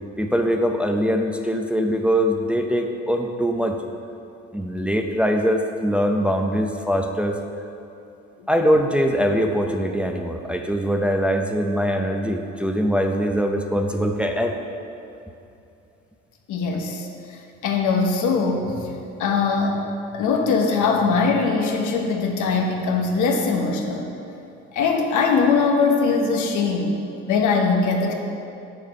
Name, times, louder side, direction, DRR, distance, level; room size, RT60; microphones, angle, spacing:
voice 1, 0.2-3.8 4.5-7.4 8.5-14.6, equal, 5° right, 3 dB, 0.6 m, -22 dB
voice 2, 16.5-17.1 17.6-18.9 19.2-19.8 20.1-24.1 24.7-27.0 27.3-28.1, left 4 dB, 85° left, 2 dB, 1.1 m, -21 dB
7.4 x 6.7 x 5.1 m, 2.7 s
cardioid pair, 90°, 30 cm